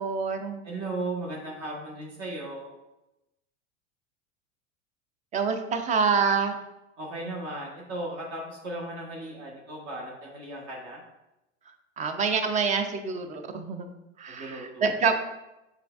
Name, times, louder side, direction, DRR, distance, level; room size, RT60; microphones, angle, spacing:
voice 1, 0.0-0.6 5.3-6.6 12.0-13.9 14.2-15.2, right 5 dB, 20° right, 7 dB, 0.4 m, -26 dB
voice 2, 0.6-2.7 7.0-11.0 14.3-15.2, right 2 dB, 40° right, -1 dB, 1.2 m, -36 dB
6.6 x 3.4 x 2.3 m, 0.95 s
figure-of-eight pair, 85°, 37 cm